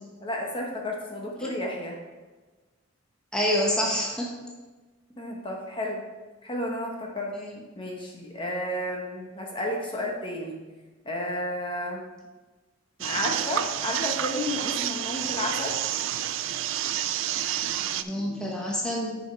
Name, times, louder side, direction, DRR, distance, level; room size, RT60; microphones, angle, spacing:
voice 1, 0.2-2.0 5.2-6.0 6.4-7.3 7.8-10.6 11.0-12.0 13.0-15.8, left 1 dB, 25° left, 0 dB, 1.1 m, -32 dB
voice 2, 3.3-4.3 7.3-7.5 17.8-19.2, equal, 5° left, -3 dB, 1.0 m, -27 dB
sound 1, 13.0-18.0, right 11 dB, 75° right, 0.4 m, -29 dB
7.6 x 5.0 x 4.5 m, 1.3 s
head